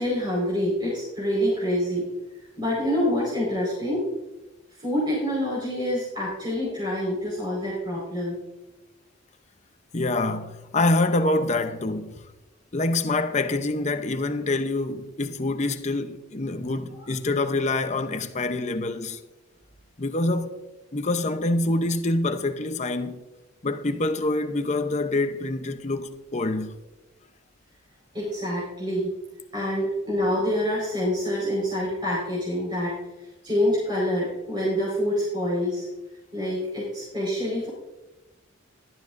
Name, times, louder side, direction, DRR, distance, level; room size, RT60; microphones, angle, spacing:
voice 1, 0.0-2.0 2.6-4.1 4.8-8.4 28.1-29.1 29.5-32.9 33.2-35.9 36.3-37.7, equal, 20° right, 4.7 m, -26 dB
voice 2, 9.9-12.3 12.7-19.2 20.0-20.6 20.9-23.2 23.6-26.8, left 2 dB, 35° left, 0.8 m, -26 dB
17.0 x 12.0 x 2.6 m
head